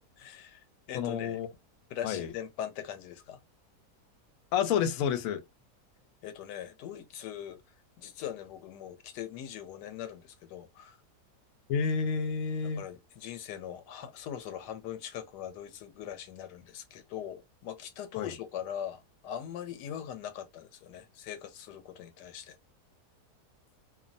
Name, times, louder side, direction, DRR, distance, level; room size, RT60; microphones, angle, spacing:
voice 1, 0.2-1.4 1.9-3.4 6.2-7.6 8.0-11.0 12.8-22.6, left 10 dB, 90° left, 1.2 m, -41 dB
voice 2, 0.9-1.5 2.0-2.3 4.5-5.4 11.7-12.8 18.2-18.3, left 7 dB, 70° left, 0.9 m, -29 dB
2.8 x 2.1 x 2.5 m
omnidirectional pair, 1.8 m